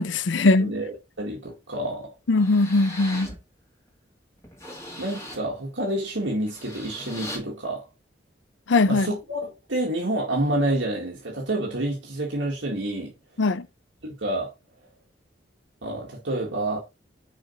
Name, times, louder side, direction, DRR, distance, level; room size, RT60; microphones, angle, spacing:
voice 1, 0.0-0.7 2.3-3.3 8.7-9.1 13.4-13.6, left 3 dB, 85° left, 0.6 m, -20 dB
voice 2, 0.6-2.1 5.0-7.9 8.9-13.1 14.0-14.5 15.8-16.8, right 1 dB, 85° right, 2.0 m, -28 dB
sound 1, 1.7-1.8 2.3-3.4 3.9-4.0 4.4-5.4 6.3-7.4, left 1 dB, 15° left, 2.0 m, -39 dB
6.4 x 5.0 x 4.1 m
head